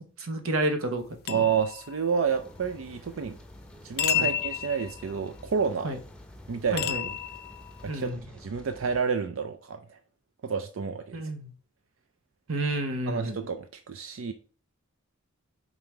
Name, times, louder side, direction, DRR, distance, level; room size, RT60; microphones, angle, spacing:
voice 1, 0.2-1.4 4.1-4.3 5.8-6.0 6.7-7.1 7.9-8.2 11.1-11.5 12.5-13.4, right 1 dB, 85° right, 6 dB, 1.1 m, -30 dB
sound 1, 1.3-2.5 4.0-5.4 6.8-8.1, left 10 dB, 50° left, 0.5 m, -31 dB
voice 2, 1.3-3.4 3.8-5.9 6.5-7.1 7.8-10.0 10.4-11.2 13.1-14.3, right 6 dB, 70° right, 8 dB, 0.5 m, -30 dB
Rain, 2.3-9.0, left 1 dB, 5° left, 0.7 m, -49 dB
5.5 x 3.8 x 4.5 m, 0.41 s
head